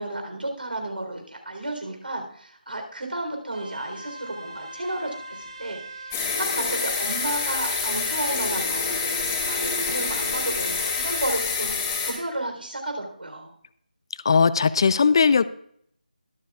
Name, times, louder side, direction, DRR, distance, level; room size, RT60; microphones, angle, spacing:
voice 1, 0.0-6.1 6.4-8.8 9.4-13.5, right 1 dB, 85° right, 4 dB, 3.6 m, -32 dB
sound 1, 3.5-11.3, right 3 dB, 45° right, 3.4 m, -40 dB
sound 2, 6.1-12.1, left 5 dB, 15° left, 2.1 m, -27 dB
voice 2, 14.2-15.4, left 5 dB, 30° left, 16 dB, 0.4 m, -18 dB
22.0 x 7.5 x 2.4 m, 0.66 s
figure-of-eight pair, 165°, 5 cm